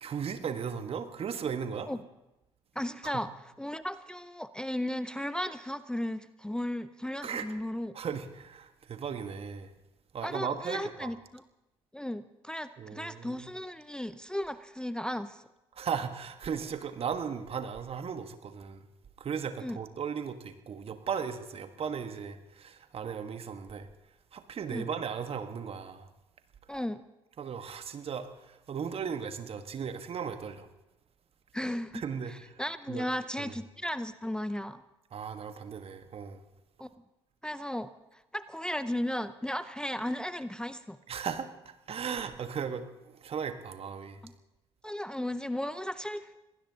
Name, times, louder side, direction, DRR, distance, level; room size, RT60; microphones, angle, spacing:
voice 1, 0.0-1.9 3.0-3.2 7.2-7.5 7.9-9.7 10.1-11.1 12.8-13.5 15.7-18.9 19.2-23.9 24.3-26.1 27.4-30.7 31.9-32.3 32.9-33.1 33.4-33.5 35.1-36.4 41.1-44.2, right 7 dB, 45° right, 9 dB, 1.4 m, -36 dB
voice 2, 2.8-8.0 10.2-11.4 11.9-15.4 19.6-19.8 24.7-24.9 26.7-27.0 31.5-32.0 32.3-34.8 36.8-36.9 37.4-41.0 44.2-44.3 44.8-46.4, left 1 dB, 5° left, 13 dB, 0.6 m, -35 dB
26.0 x 19.0 x 2.9 m, 0.97 s
figure-of-eight pair, 50°, 14 cm